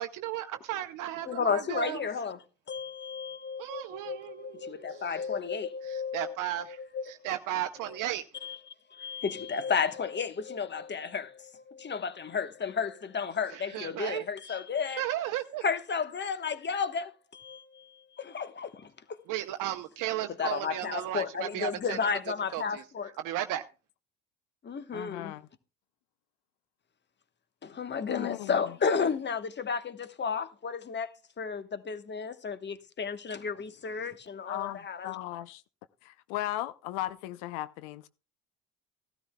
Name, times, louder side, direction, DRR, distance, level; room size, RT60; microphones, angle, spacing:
voice 1, 0.0-2.1 3.6-5.5 5.8-8.2 13.5-15.6 19.3-22.1 22.5-23.6, right 13 dB, 65° right, 0.8 m, -35 dB
voice 2, 1.3-2.4 2.7-6.4 6.7-7.0 8.4-8.5 8.9-15.0 15.6-19.2 20.4-23.1 24.6-25.3 27.6-31.1 31.4-35.1, left 6 dB, 30° left, 1.2 m, -33 dB
voice 3, 24.9-25.5 28.1-28.6 34.5-35.6 36.0-38.1, left 15 dB, 80° left, 0.7 m, -36 dB
16.5 x 12.5 x 2.3 m
supercardioid pair, 75°, 35 cm